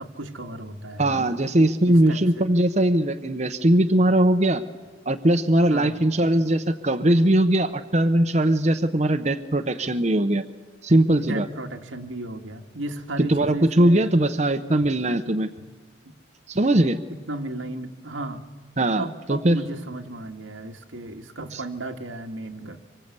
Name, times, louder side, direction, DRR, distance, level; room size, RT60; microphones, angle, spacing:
voice 1, 0.0-1.3 1.9-2.5 5.7-5.9 11.1-14.3 15.6-15.7 17.1-18.5 19.0-22.8, right 2 dB, 85° right, 4 dB, 1.8 m, -35 dB
voice 2, 1.0-4.6 5.1-10.5 10.8-11.5 13.3-15.5 16.5-17.0 18.8-19.6 21.5-21.6, right 1 dB, 35° right, 7 dB, 0.8 m, -20 dB
25.0 x 24.0 x 8.3 m, 1.4 s
head